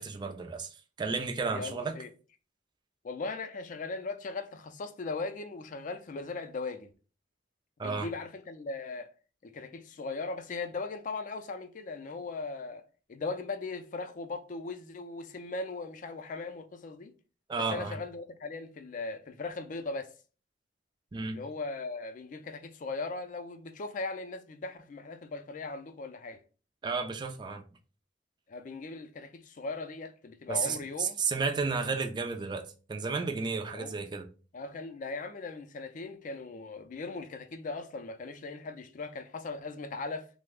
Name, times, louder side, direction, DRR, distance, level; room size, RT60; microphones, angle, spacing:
voice 1, 0.0-1.9 7.8-8.1 17.5-18.0 21.1-21.4 26.8-27.6 30.5-34.3, right 4 dB, 25° right, 0.3 m, -32 dB
voice 2, 1.5-2.1 3.0-6.9 7.8-9.1 9.4-12.8 13.1-17.1 17.6-20.1 21.3-26.4 28.5-31.2 33.7-34.0 34.5-40.3, left 3 dB, 45° left, 0.4 m, -38 dB
3.2 x 2.0 x 3.4 m
head